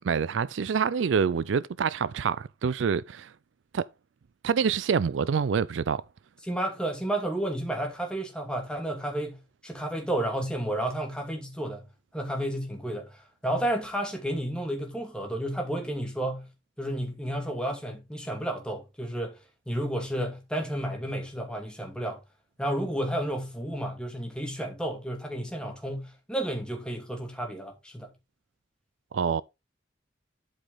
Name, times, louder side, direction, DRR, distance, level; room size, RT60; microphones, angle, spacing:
voice 1, 0.0-3.3 3.7-3.8 4.4-6.0 29.1-29.4, right 6 dB, 85° right, 0.4 m, -26 dB
voice 2, 6.4-11.9 12.1-16.5 16.8-19.4 19.7-22.2 22.6-28.1, right 1 dB, 5° left, 2.4 m, -31 dB
12.0 x 5.0 x 3.9 m
head